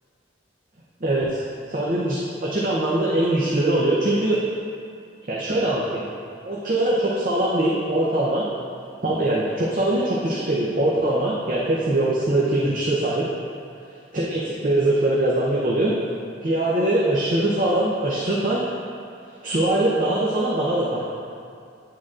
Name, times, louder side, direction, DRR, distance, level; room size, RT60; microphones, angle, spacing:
voice 1, 1.0-1.4 1.7-4.4 5.3-6.0 6.4-8.5 9.0-13.3 14.1-16.0 16.4-18.6 19.4-21.0, right 1 dB, 40° right, -6 dB, 0.6 m, -22 dB
9.1 x 6.4 x 2.4 m, 2.4 s
head